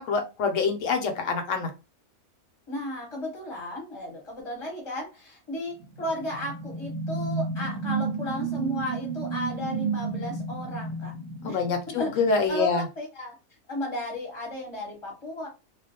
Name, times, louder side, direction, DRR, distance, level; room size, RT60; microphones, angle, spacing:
voice 1, 0.0-1.7 11.4-12.8, left 4 dB, 70° left, 5 dB, 0.8 m, -26 dB
voice 2, 2.7-11.1 11.5-12.2 12.5-13.3 13.7-15.5, left 1 dB, 25° left, -2 dB, 0.7 m, -34 dB
sound 1, 5.8-12.3, right 4 dB, 70° right, 0.6 m, -32 dB
2.4 x 2.0 x 2.7 m, 0.29 s
omnidirectional pair, 1.5 m